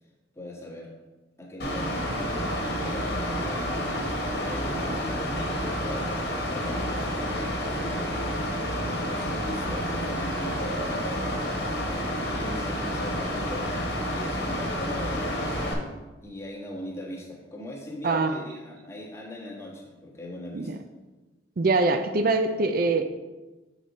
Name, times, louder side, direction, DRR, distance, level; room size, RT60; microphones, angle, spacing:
voice 1, 0.3-0.9 1.4-2.4 2.8-8.2 8.8-11.7 12.3-13.7 14.0-15.8 16.2-20.8, left 1 dB, 15° left, -4 dB, 1.3 m, -40 dB
Mechanical fan, 1.6-15.7, equal, 55° left, 1.2 m, -29 dB
voice 2, 18.0-18.4 20.5-20.8 21.6-23.0, right 3 dB, 50° right, 8 dB, 0.4 m, -23 dB
7.1 x 5.0 x 4.0 m, 1.2 s
head